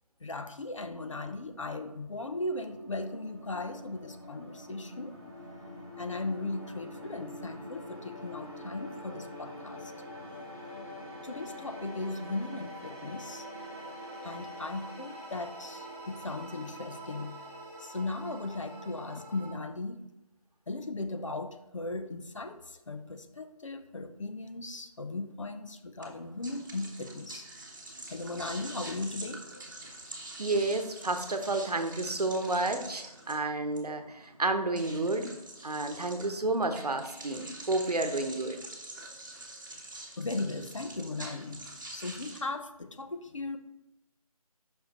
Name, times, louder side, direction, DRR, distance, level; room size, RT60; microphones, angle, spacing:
voice 1, 0.2-5.1 6.0-9.9 11.2-13.5 14.2-17.4 17.8-20.0 20.7-27.5 28.1-29.4 40.2-43.6, left 2 dB, 55° left, 8 dB, 0.6 m, -37 dB
sound 1, 1.5-19.5, equal, 5° right, 1.4 m, -45 dB
sound 2, 26.0-42.4, right 2 dB, 30° right, 1.1 m, -46 dB
voice 2, 30.4-35.3 35.6-38.6, right 2 dB, 85° right, 7 dB, 1.0 m, -30 dB
5.6 x 5.4 x 4.0 m, 0.90 s
figure-of-eight pair, 170°, 20 cm